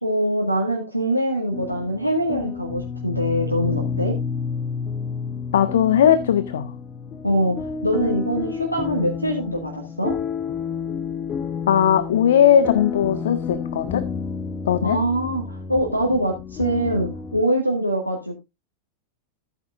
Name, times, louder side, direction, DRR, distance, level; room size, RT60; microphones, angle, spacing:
voice 1, 0.0-4.1 7.2-7.6 7.8-10.1 14.8-18.4, right 1 dB, 90° right, 1.9 m, -23 dB
sound 1, 1.5-17.4, left 6 dB, 25° left, 1.0 m, -30 dB
voice 2, 5.5-6.7 11.7-14.1 14.7-15.0, left 9 dB, 60° left, 0.7 m, -18 dB
14.0 x 9.1 x 2.5 m
figure-of-eight pair, 90°, 0 cm